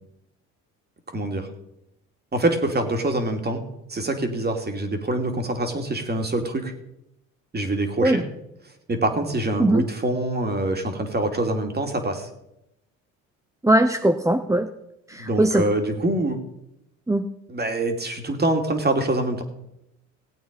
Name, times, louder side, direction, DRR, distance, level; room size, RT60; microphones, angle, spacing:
voice 1, 1.1-1.5 2.3-3.6 3.9-6.7 7.5-8.2 8.9-12.3 15.2-16.4 17.5-19.4, right 2 dB, 25° right, 5 dB, 2.6 m, -25 dB
voice 2, 13.6-14.7 15.1-15.6 17.1-17.3, right 1 dB, 10° right, 6 dB, 0.8 m, -20 dB
17.0 x 8.6 x 5.3 m, 0.85 s
supercardioid pair, 75°, 36 cm